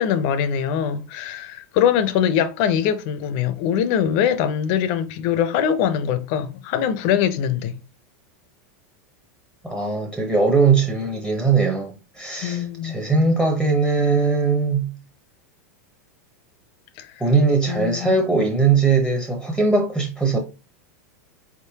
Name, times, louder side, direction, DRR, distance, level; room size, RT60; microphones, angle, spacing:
voice 1, 0.0-7.8 12.4-13.0 17.0-17.1 17.7-18.2, left 9 dB, 50° left, 0.6 m, -22 dB
voice 2, 9.6-14.9 17.2-20.4, right 4 dB, 5° right, 0.8 m, -20 dB
4.2 x 3.6 x 2.8 m
supercardioid pair, 130°, 8 cm